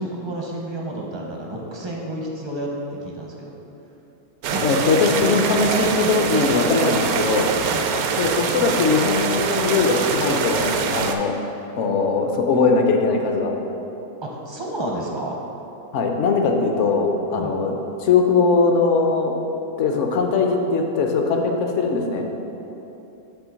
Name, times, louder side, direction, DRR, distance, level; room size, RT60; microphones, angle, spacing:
voice 1, 0.0-2.7 3.0-3.6 4.5-4.8 7.6-7.8 14.2-15.4 17.3-17.6, right 1 dB, 30° right, -2 dB, 0.5 m, -31 dB
sound 1, 4.4-11.1, right 5 dB, 75° right, 1.0 m, -24 dB
voice 2, 4.6-7.5 8.2-11.3 11.8-13.5 15.9-17.7 18.0-19.4 19.8-22.3, left 4 dB, 60° left, 3 dB, 0.8 m, -20 dB
8.3 x 3.2 x 6.2 m, 3.0 s
omnidirectional pair, 1.7 m